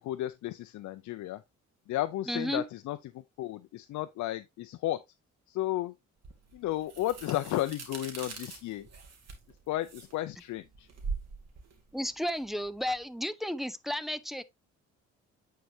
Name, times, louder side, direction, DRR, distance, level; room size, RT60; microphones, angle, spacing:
voice 1, 0.0-1.4 1.9-5.0 5.5-5.9 6.5-8.9 9.7-10.9, left 14 dB, 70° left, 0.5 m, -33 dB
voice 2, 2.3-2.6 11.9-14.4, equal, ahead, 0.5 m, -33 dB
sound 1, 6.2-13.0, right 5 dB, 55° right, 2.5 m, -43 dB
9.1 x 4.7 x 2.7 m
cardioid pair, 90°, 30 cm